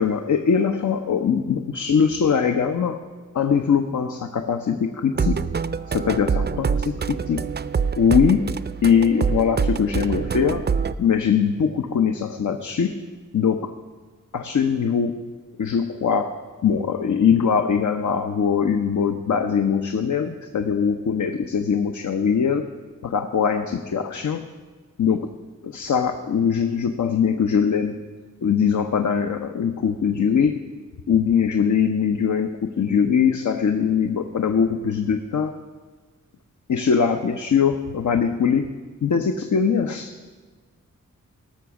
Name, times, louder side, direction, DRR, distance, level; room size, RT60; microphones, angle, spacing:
voice 1, 0.0-3.0 3.3-5.4 5.9-7.4 8.0-8.5 8.8-10.6 11.0-12.9 13.3-13.7 14.3-15.1 15.6-22.7 23.0-24.5 25.0-25.3 25.6-28.0 28.4-30.7 31.1-35.6 36.7-38.7 39.0-40.3, left 7 dB, 75° left, 6 dB, 0.8 m, -21 dB
sound 1, 5.2-10.9, right 5 dB, 35° right, 0.4 m, -25 dB
17.5 x 6.3 x 7.0 m, 1.4 s
wide cardioid pair, 80°, 30 cm